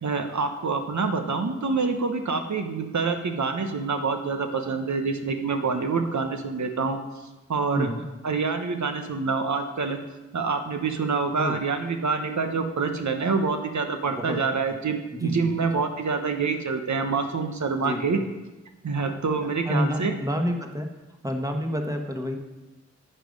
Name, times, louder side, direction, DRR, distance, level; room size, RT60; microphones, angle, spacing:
voice 1, 0.0-7.0 7.5-7.9 8.2-10.0 10.3-18.2 18.8-20.1, right 4 dB, 80° right, 6 dB, 1.0 m, -26 dB
voice 2, 7.7-8.0 11.4-11.6 14.1-14.4 15.1-15.7 17.8-18.2 19.6-20.9 21.2-22.4, equal, 10° right, 3 dB, 1.2 m, -29 dB
10.5 x 6.8 x 5.3 m, 1.1 s
wide cardioid pair, 80°, 29 cm